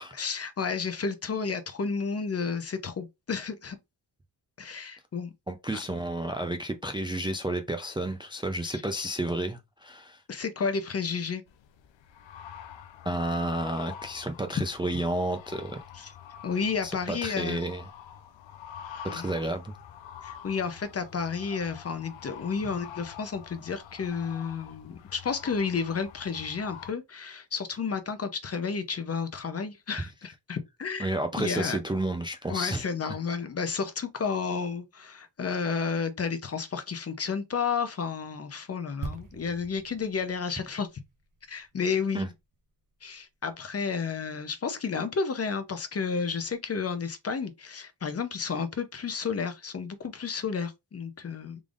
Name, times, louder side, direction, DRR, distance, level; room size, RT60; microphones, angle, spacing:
voice 1, 0.1-3.8 4.6-5.3 8.7-8.8 10.3-11.4 15.9-16.1 16.4-17.6 19.0-19.3 20.2-31.1 31.4-31.8 32.5-40.9 41.5-42.3 43.0-51.6, left 5 dB, 35° left, 0.6 m, -31 dB
voice 2, 5.5-10.2 13.0-15.8 16.8-17.8 19.1-19.7 31.0-32.8 42.1-42.3, right 1 dB, 10° right, 0.4 m, -31 dB
sound 1, 11.5-26.9, left 9 dB, 90° left, 0.6 m, -46 dB
sound 2, 39.0-42.7 42.9-43.1, right 4 dB, 45° right, 0.7 m, -44 dB
3.7 x 3.4 x 2.4 m
cardioid pair, 110°, 44 cm